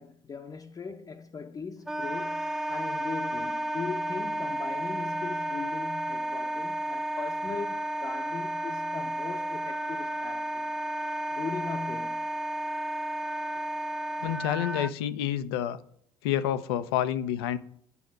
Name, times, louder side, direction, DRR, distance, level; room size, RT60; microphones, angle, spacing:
voice 1, 0.0-10.6 11.3-12.3, left 5 dB, 30° left, 0.7 m, -39 dB
Wind instrument woodwind instrument, 1.9-14.9, right 1 dB, 5° right, 0.4 m, -32 dB
voice 2, 14.2-15.8 16.2-17.6, left 11 dB, 90° left, 0.6 m, -28 dB
8.4 x 5.1 x 7.5 m
supercardioid pair, 80°, 12 cm